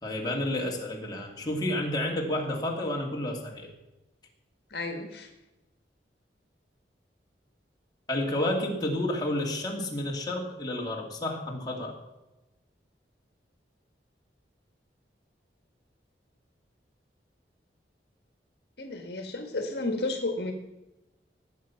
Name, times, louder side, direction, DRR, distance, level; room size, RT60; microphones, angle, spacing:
voice 1, 0.0-3.7 8.1-12.0, left 1 dB, 25° left, -1 dB, 2.4 m, -30 dB
voice 2, 4.7-5.3 18.8-20.5, left 2 dB, 65° left, 5 dB, 1.7 m, -32 dB
19.5 x 8.0 x 5.8 m, 1.0 s
head